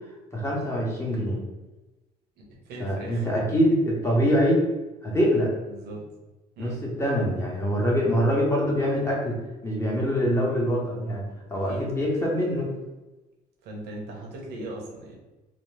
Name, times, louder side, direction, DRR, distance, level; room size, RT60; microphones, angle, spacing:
voice 1, 0.3-1.4 2.8-4.6 5.0-5.5 6.6-9.4 9.6-11.2 11.5-12.7, equal, 15° left, -3 dB, 1.0 m, -24 dB
voice 2, 2.4-3.3 5.7-6.0 6.6-6.8 11.5-11.9 13.6-15.2, right 1 dB, 80° right, -1 dB, 1.0 m, -39 dB
2.9 x 2.1 x 3.3 m, 1.1 s
cardioid pair, 110°, 17 cm